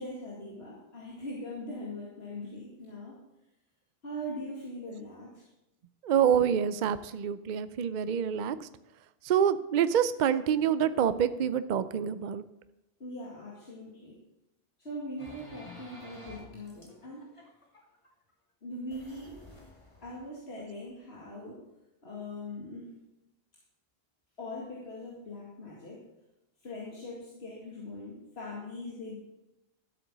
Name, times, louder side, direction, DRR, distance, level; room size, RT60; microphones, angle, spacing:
voice 1, 0.0-3.2 4.0-5.4 13.0-14.2 14.8-17.2 18.6-19.4 20.0-21.6 22.0-23.0 24.4-26.0 26.6-29.2, left 1 dB, 80° left, -4 dB, 2.5 m, -41 dB
voice 2, 6.0-8.7 9.2-12.4 20.6-20.7, right 8 dB, 55° right, 13 dB, 0.6 m, -27 dB
sound 1, 15.2-18.3 18.9-20.3, left 1 dB, 30° left, 2.2 m, -51 dB
12.5 x 7.8 x 6.1 m, 0.93 s
omnidirectional pair, 1.1 m